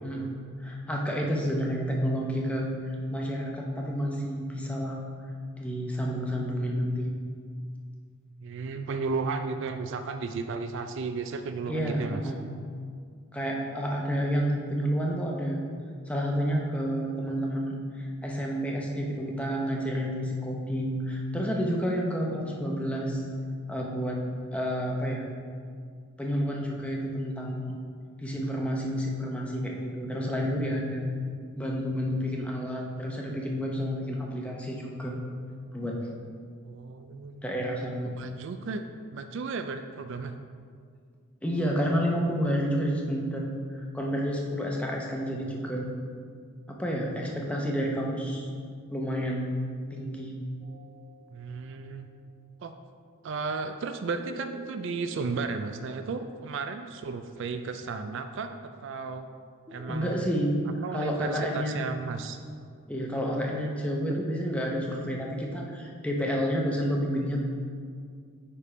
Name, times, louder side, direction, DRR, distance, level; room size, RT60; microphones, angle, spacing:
voice 1, 0.0-5.0 5.6-7.1 11.7-12.4 13.3-15.6 16.1-23.3 23.7-24.2 24.5-25.2 26.2-27.7 28.2-31.1 31.6-35.2 35.7-36.1 37.4-38.1 41.4-45.9 46.7-48.5 48.9-49.5 49.9-50.4 59.9-60.6 60.9-61.9 62.9-67.4, equal, 5° left, -2 dB, 0.7 m, -30 dB
voice 2, 8.4-12.2 36.6-37.4 38.0-38.8 39.1-40.4 51.3-52.1 52.6-52.7 53.2-59.3 59.7-60.3 60.8-62.4 64.1-64.2, right 4 dB, 55° right, 8 dB, 0.3 m, -34 dB
sound 1, 50.6-52.2 54.2-57.3 59.7-61.1, right 1 dB, 25° right, 1.4 m, -46 dB
8.6 x 3.5 x 5.0 m, 2.1 s
head